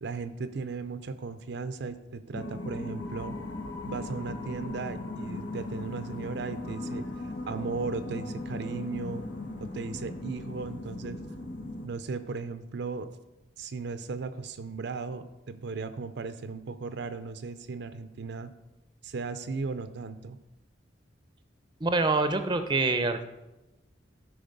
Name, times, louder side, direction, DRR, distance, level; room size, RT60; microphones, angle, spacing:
voice 1, 0.0-3.4 3.9-7.1 7.5-9.2 9.6-11.2 11.8-13.1 13.6-18.5 19.0-20.4, right 4 dB, 65° right, 11 dB, 0.5 m, -36 dB
sound 1, 2.3-11.9, left 2 dB, 65° left, 1.4 m, -38 dB
voice 2, 21.8-23.2, right 3 dB, 25° right, 9 dB, 0.6 m, -25 dB
12.5 x 5.0 x 5.2 m, 1.0 s
head